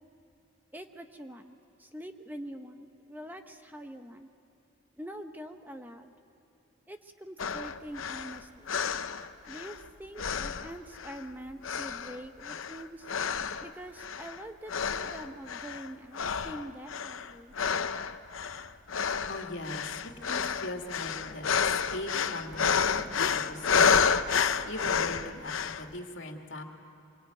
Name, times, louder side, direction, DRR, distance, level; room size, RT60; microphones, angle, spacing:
voice 1, 0.7-4.3 5.0-6.1 6.9-8.8 9.4-13.1 13.6-17.5, right 1 dB, 10° right, 6 dB, 0.8 m, -44 dB
sound 1, 7.4-9.8 10.2-11.3 11.6-13.7 14.0-14.4 14.7-15.9 16.1-25.9, left 6 dB, 90° left, 0.8 m, -30 dB
voice 2, 19.3-23.9 24.6-26.6, left 2 dB, 70° left, 3 dB, 2.4 m, -40 dB
25.5 x 23.0 x 9.3 m, 2.9 s
head